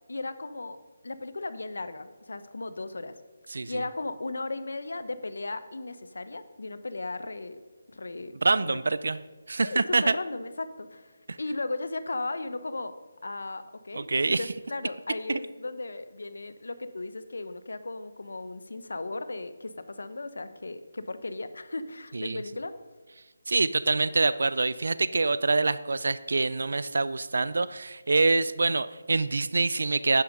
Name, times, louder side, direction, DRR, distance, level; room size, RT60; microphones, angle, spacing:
voice 1, 0.1-0.8 1.0-3.2 3.7-7.6 7.9-8.3 8.6-8.8 9.6-12.9 13.2-22.7, left 2 dB, 75° left, 12 dB, 0.9 m, -36 dB
voice 2, 3.5-3.8 8.4-10.1 11.3-11.4 13.9-14.4 15.3-15.4 22.1-22.4 23.5-30.2, right 3 dB, 60° right, 16 dB, 0.5 m, -25 dB
10.5 x 9.4 x 5.2 m, 1.3 s
hypercardioid pair, 180°, 0 cm